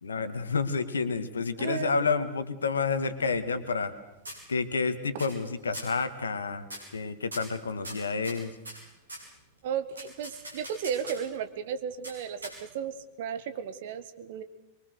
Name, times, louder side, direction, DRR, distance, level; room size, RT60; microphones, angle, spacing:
voice 1, 0.0-3.9 4.5-6.7 6.9-8.6, left 4 dB, 70° left, 11 dB, 1.9 m, -29 dB
voice 2, 1.6-2.0 9.6-14.4, right 8 dB, 55° right, 11 dB, 1.8 m, -34 dB
sound 1, 3.3-3.9 4.2-4.8 5.2-5.5 5.7-6.0 6.6-7.0 7.3-9.3 9.9-11.3 12.0-12.9, equal, 75° right, 7.5 m, -42 dB
24.5 x 23.5 x 6.6 m, 0.93 s
figure-of-eight pair, 90°, 0 cm